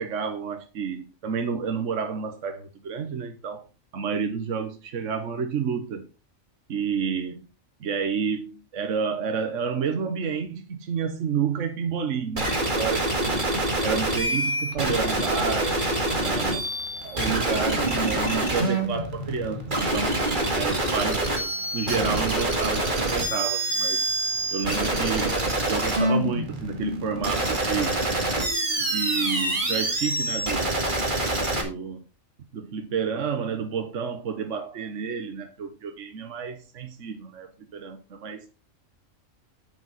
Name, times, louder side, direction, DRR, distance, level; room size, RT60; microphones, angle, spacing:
voice 1, 0.0-3.6 3.9-6.1 6.7-7.4 7.8-13.4 13.8-15.9 16.1-16.7 17.0-20.2 20.5-21.3 21.7-24.0 24.5-25.4 25.7-28.0 28.9-30.7 31.5-32.0 32.5-38.5, right 6 dB, 65° right, 1.4 m, -30 dB
sound 1, 12.4-31.6, right 1 dB, 35° right, 2.3 m, -26 dB
10.5 x 7.2 x 4.1 m
omnidirectional pair, 1.4 m